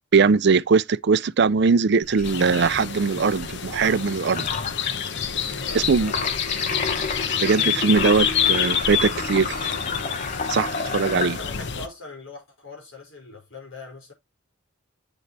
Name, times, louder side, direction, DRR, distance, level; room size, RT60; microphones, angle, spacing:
voice 1, 0.1-4.5 5.7-6.1 7.4-9.7 10.5-11.4, right 5 dB, 55° right, 0.5 m, -20 dB
sound 1, 2.0-11.8, left 3 dB, 40° left, 1.1 m, -32 dB
sound 2, 2.2-11.9, left 8 dB, 60° left, 0.9 m, -28 dB
voice 2, 5.6-6.3 11.0-14.1, left 3 dB, 85° left, 5.4 m, -41 dB
8.0 x 7.0 x 3.2 m
head